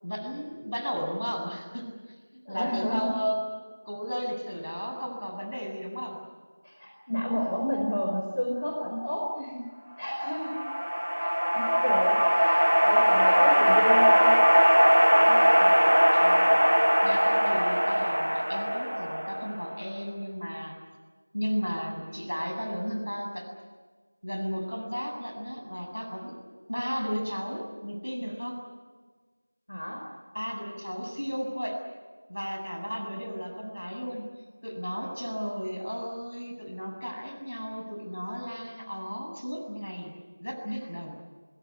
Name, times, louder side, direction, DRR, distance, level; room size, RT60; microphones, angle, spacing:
voice 1, 0.0-3.4 3.8-6.2 16.1-16.6 17.0-20.8 21.3-23.5 24.2-26.4 26.7-28.6 30.3-31.8 32.3-34.3 34.6-40.1 40.4-41.2, equal, 80° left, 2 dB, 7.9 m, -34 dB
voice 2, 2.4-3.2 6.6-9.7 10.0-10.6 11.2-14.4 15.1-15.8 29.7-30.0, equal, 55° left, 0 dB, 4.7 m, -31 dB
sound 1, 10.2-19.7, equal, 80° right, 1.8 m, -21 dB
29.5 x 16.5 x 9.8 m, 1.4 s
figure-of-eight pair, 175°, 0 cm